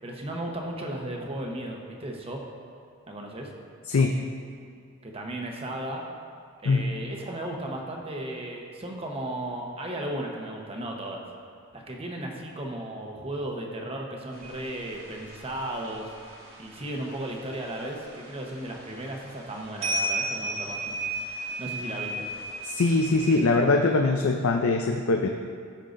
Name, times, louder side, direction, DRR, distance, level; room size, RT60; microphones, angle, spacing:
voice 1, 0.0-2.4 3.1-3.5 5.0-6.0 6.6-11.2 11.7-16.1 16.6-21.0 21.6-22.3, right 1 dB, 25° right, 0 dB, 0.9 m, -35 dB
sound 1, 14.3-23.5, right 2 dB, 65° right, 1.9 m, -35 dB
voice 2, 22.6-25.3, left 3 dB, 70° left, 3 dB, 0.4 m, -22 dB
14.5 x 5.5 x 2.6 m, 2.3 s
head